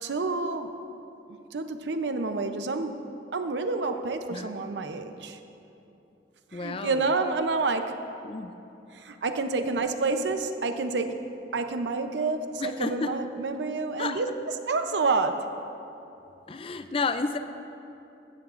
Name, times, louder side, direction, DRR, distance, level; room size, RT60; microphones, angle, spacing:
voice 1, 0.0-0.7 1.5-3.0 3.3-5.4 6.5-8.0 8.9-14.3 14.7-15.5, right 3 dB, 90° right, 7 dB, 0.7 m, -29 dB
voice 2, 6.5-7.0 8.2-8.6 12.6-13.2 14.0-14.2 16.5-17.4, left 4 dB, 30° left, 10 dB, 0.4 m, -31 dB
15.5 x 13.0 x 2.5 m, 2.9 s
head